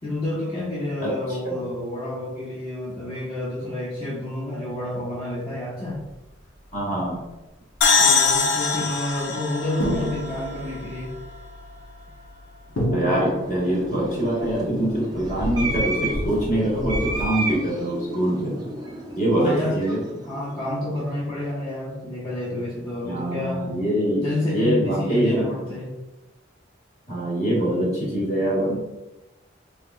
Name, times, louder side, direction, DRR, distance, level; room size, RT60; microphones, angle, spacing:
voice 1, 0.0-6.0 8.0-11.2 19.4-19.8 20.3-23.7 24.1-25.9, left 1 dB, 20° left, -12 dB, 1.1 m, -29 dB
sound 1, 5.9-6.1 6.5-6.7 7.0-7.2 7.8-7.9 8.2-8.3 9.1-9.2 9.8-17.2, equal, 85° left, 0.9 m, -32 dB
voice 2, 6.7-7.2 12.9-18.7 19.2-20.0 23.0-24.2 24.5-25.4 27.1-28.7, right 1 dB, 40° left, -6 dB, 1.4 m, -24 dB
sound 2, 7.8-11.4, left 5 dB, 65° left, 0.5 m, -22 dB
sound 3, 12.9-21.4, right 2 dB, 20° right, 0.5 m, -33 dB
4.1 x 3.5 x 2.4 m, 1.0 s
head